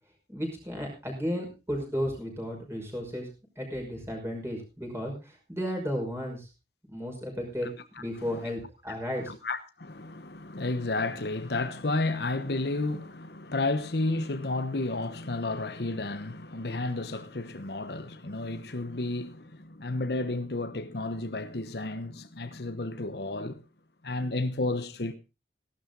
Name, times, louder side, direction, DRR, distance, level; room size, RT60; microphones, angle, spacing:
voice 1, 0.3-3.3 3.6-6.5 6.9-7.7 8.0-9.3, equal, 15° right, 5.5 m, -34 dB
voice 2, 9.2-23.6 24.0-25.1, left 2 dB, 65° left, 1.0 m, -32 dB
16.0 x 12.0 x 3.9 m
head